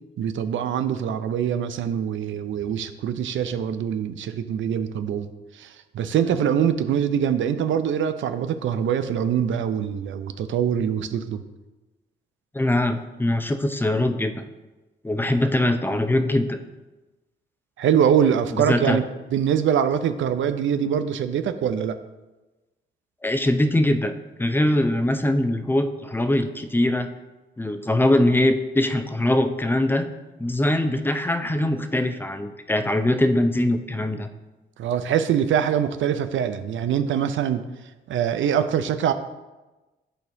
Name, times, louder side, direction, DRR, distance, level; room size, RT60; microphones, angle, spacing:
voice 1, 0.2-11.4 17.8-19.0 19.3-22.0 34.8-37.6 38.1-39.1, right 8 dB, 75° right, 10 dB, 0.5 m, -23 dB
voice 2, 12.5-14.5 15.0-16.6 18.5-19.0 23.2-24.1 24.4-27.1 27.6-30.1 30.4-34.3, left 1 dB, 10° left, 7 dB, 0.7 m, -22 dB
11.0 x 4.3 x 2.7 m, 1.1 s
supercardioid pair, 55°, 20 cm